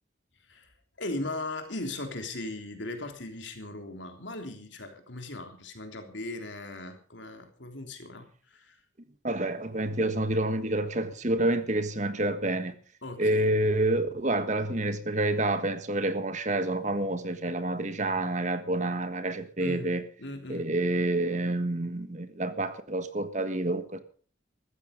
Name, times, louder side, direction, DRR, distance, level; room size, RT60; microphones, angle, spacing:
voice 1, 0.4-8.8 13.0-13.5 19.6-20.7, left 2 dB, 75° left, 3.3 m, -38 dB
voice 2, 9.2-12.8 13.2-20.0 20.5-24.0, right 1 dB, 40° right, 1.5 m, -28 dB
15.5 x 13.5 x 5.2 m
head